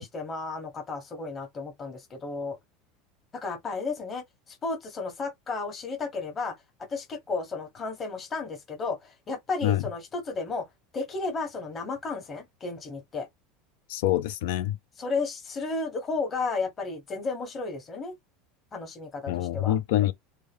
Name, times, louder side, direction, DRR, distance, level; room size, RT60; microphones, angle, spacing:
voice 1, 0.0-2.6 3.3-6.5 6.9-10.7 10.9-13.3 15.0-18.1 18.7-19.8, left 3 dB, 20° left, 1.1 m, -33 dB
voice 2, 13.9-14.8 19.3-20.1, left 13 dB, 75° left, 0.4 m, -25 dB
3.4 x 2.2 x 3.3 m
supercardioid pair, 155°, 0 cm